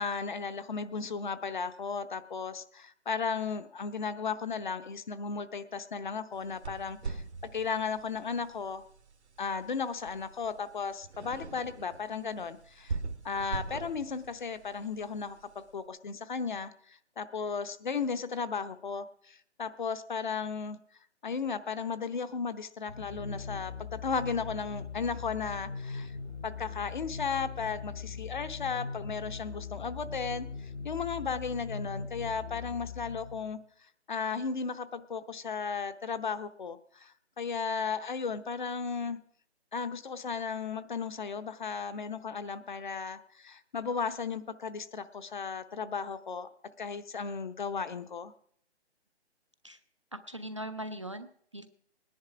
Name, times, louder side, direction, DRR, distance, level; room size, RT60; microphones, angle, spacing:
voice 1, 0.0-7.2 7.5-8.8 9.4-13.0 13.2-16.7 17.2-20.8 21.2-26.1 26.4-30.5 30.8-33.6 34.1-39.2 39.7-46.5 46.8-48.3, left 5 dB, 45° left, 11 dB, 0.8 m, -35 dB
sound 1, 6.3-15.7, right 4 dB, 75° right, 1.5 m, -43 dB
sound 2, 22.9-33.6, left 5 dB, 85° left, 3.5 m, -41 dB
voice 2, 50.1-51.7, right 1 dB, 30° right, 10 dB, 0.4 m, -40 dB
18.0 x 10.5 x 4.9 m, 0.64 s
hypercardioid pair, 160°, 34 cm